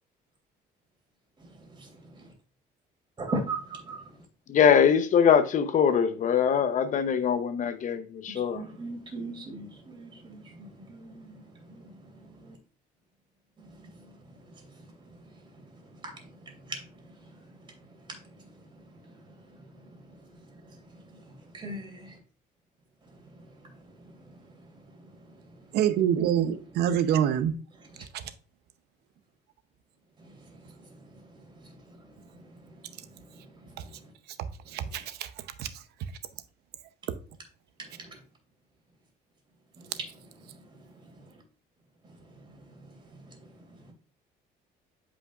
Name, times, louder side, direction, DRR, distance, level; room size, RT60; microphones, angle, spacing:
voice 1, 1.4-2.3 3.2-4.2 8.3-12.6 13.6-22.2 23.0-25.8 27.9-28.0 30.2-34.1 37.8-38.2 39.8-40.1 40.4-41.4 42.0-43.9, right 2 dB, 30° right, 2.7 m, -43 dB
voice 2, 4.5-8.6, left 7 dB, 50° left, 0.8 m, -22 dB
voice 3, 25.7-27.5 28.0-28.2 34.7-35.3 35.6-35.8, right 9 dB, 75° right, 0.7 m, -26 dB
8.1 x 5.2 x 2.4 m
cardioid pair, 110°, 17 cm